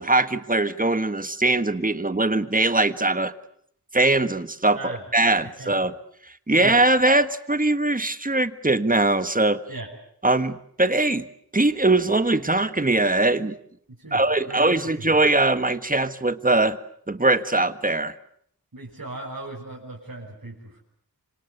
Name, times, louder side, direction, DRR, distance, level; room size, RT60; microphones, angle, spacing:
voice 1, 0.0-3.3 3.9-5.9 6.5-9.6 10.2-11.3 11.5-13.5 14.1-16.8 17.1-18.1, right 2 dB, 20° right, 11 dB, 1.5 m, -21 dB
voice 2, 4.7-5.0 5.4-5.7 6.5-6.7 9.7-9.9 13.9-15.1 18.7-20.8, right 2 dB, 55° right, -3 dB, 6.7 m, -38 dB
26.5 x 26.0 x 8.0 m, 0.67 s
wide cardioid pair, 45°, 38 cm